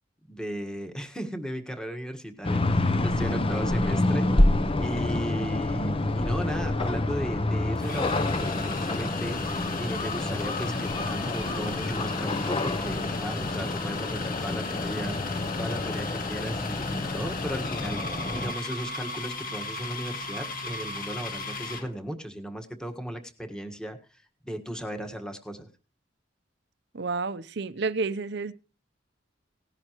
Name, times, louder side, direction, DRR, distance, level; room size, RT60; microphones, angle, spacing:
voice 1, 0.3-4.3 4.8-25.7, equal, 5° left, 5 dB, 1.6 m, -36 dB
sound 1, 2.4-18.5, left 2 dB, 30° left, 0.8 m, -28 dB
sound 2, 6.6-6.7 7.8-21.9, left 4 dB, 50° left, 1.7 m, -37 dB
voice 2, 26.9-28.5, right 4 dB, 65° right, 14 dB, 0.7 m, -30 dB
18.0 x 11.0 x 3.1 m, 0.35 s
head